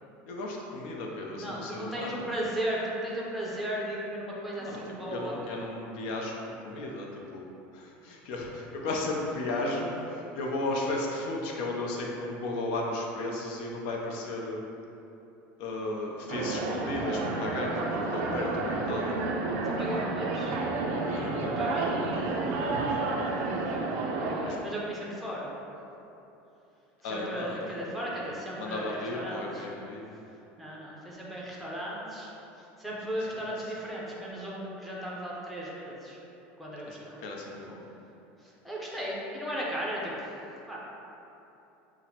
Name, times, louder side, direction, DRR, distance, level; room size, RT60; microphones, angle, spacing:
voice 1, 0.3-2.3 4.6-6.3 6.6-14.6 15.6-19.2 21.1-23.3 24.4-24.6 27.0-28.2 28.6-30.1 33.4-33.7 36.9-37.8, left 2 dB, 70° left, -1 dB, 0.5 m, -35 dB
voice 2, 1.4-5.4 19.6-20.5 21.6-21.9 22.4-22.9 24.1-25.5 27.1-29.6 30.6-32.3 32.8-36.2 36.6-37.2 38.6-40.1 40.7-40.8, right 1 dB, ahead, -6 dB, 0.5 m, -36 dB
sound 1, 16.3-24.6, right 3 dB, 50° right, 0.4 m, -30 dB
5.8 x 2.0 x 2.8 m, 2.9 s
cardioid pair, 165°, 5 cm